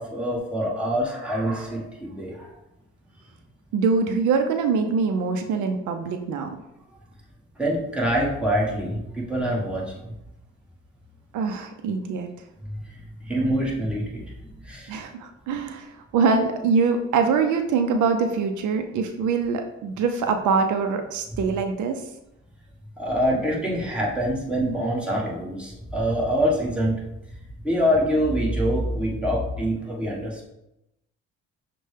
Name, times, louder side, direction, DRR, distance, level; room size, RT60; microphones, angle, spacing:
voice 1, 0.0-2.5 7.6-9.9 12.6-12.8 13.3-15.0 23.0-27.0 27.6-30.4, equal, 5° right, -4 dB, 1.3 m, -25 dB
voice 2, 3.7-6.5 11.3-12.3 14.9-22.0, right 5 dB, 80° right, 6 dB, 0.5 m, -24 dB
6.4 x 2.2 x 3.3 m, 0.88 s
cardioid pair, 90°, 30 cm